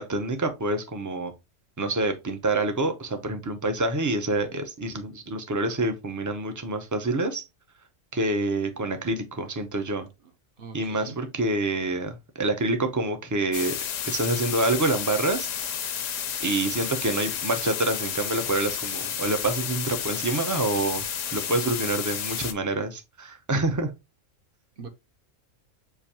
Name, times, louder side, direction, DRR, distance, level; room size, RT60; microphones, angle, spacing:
voice 1, 0.0-1.3 1.8-7.4 8.1-10.1 10.7-13.8 14.1-15.5 16.4-21.1 21.3-23.9, right 2 dB, 20° right, 0.5 m, -27 dB
voice 2, 10.6-11.2 21.5-21.7 24.8-24.9, right 5 dB, 50° right, 0.9 m, -41 dB
sound 1, 13.5-22.5, left 8 dB, 70° left, 1.0 m, -31 dB
6.8 x 2.6 x 2.8 m
omnidirectional pair, 1.3 m